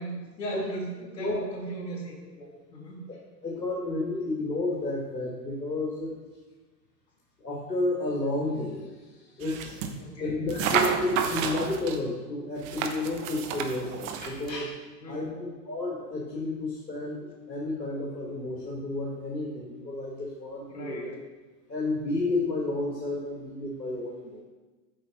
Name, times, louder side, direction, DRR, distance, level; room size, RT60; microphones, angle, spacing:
voice 1, 0.0-3.0 10.0-10.4 15.0-15.4 20.7-21.2, right 1 dB, 75° left, -2 dB, 3.2 m, -38 dB
voice 2, 3.4-6.1 7.4-8.9 9.4-9.8 10.2-14.7 15.1-17.2 17.5-21.1 21.7-24.4, left 2 dB, 90° left, -4 dB, 1.7 m, -31 dB
sound 1, 9.4-10.0 10.5-12.0 12.6-14.6, right 7 dB, 50° right, 1.1 m, -31 dB
8.3 x 5.6 x 6.0 m, 1.3 s
figure-of-eight pair, 95°, 49 cm